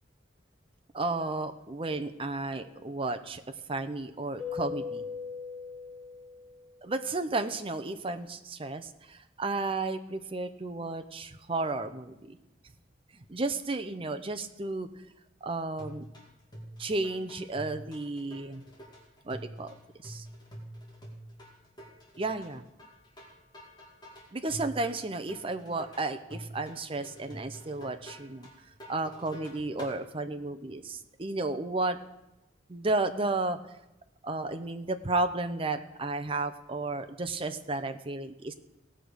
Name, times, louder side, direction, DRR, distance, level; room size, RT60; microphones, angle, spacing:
voice 1, 0.9-3.4 3.7-5.0 6.8-12.4 13.3-14.9 15.4-16.0 16.8-18.6 19.2-19.7 20.0-20.2 22.2-22.6 24.3-28.5 28.9-32.0 32.7-33.6 34.2-38.5, right 2 dB, 30° right, 8 dB, 0.7 m, -33 dB
Keyboard (musical), 4.4-6.9, left 6 dB, 5° right, 5.0 m, -39 dB
sound 1, 15.8-30.0, equal, 25° left, 2.4 m, -47 dB
17.0 x 6.3 x 5.2 m, 0.96 s
head